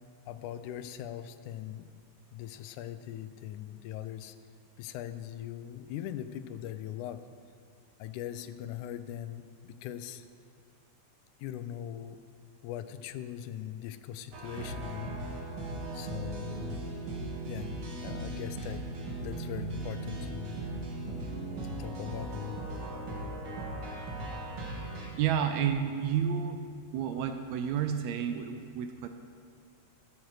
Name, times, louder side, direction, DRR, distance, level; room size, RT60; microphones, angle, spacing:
voice 1, 0.3-1.9 2.3-4.4 4.8-7.2 8.0-10.3 11.4-12.2 12.6-15.2 15.9-16.8 17.4-17.7 18.0-18.9 19.2-20.6 21.6-22.6, left 11 dB, 90° left, 11 dB, 2.0 m, -40 dB
sound 1, 14.3-25.1, right 2 dB, 50° right, 2.0 m, -38 dB
voice 2, 25.2-26.6 26.9-29.1, right 8 dB, 80° right, 7 dB, 1.7 m, -30 dB
12.5 x 8.0 x 4.7 m, 2.2 s
omnidirectional pair, 3.4 m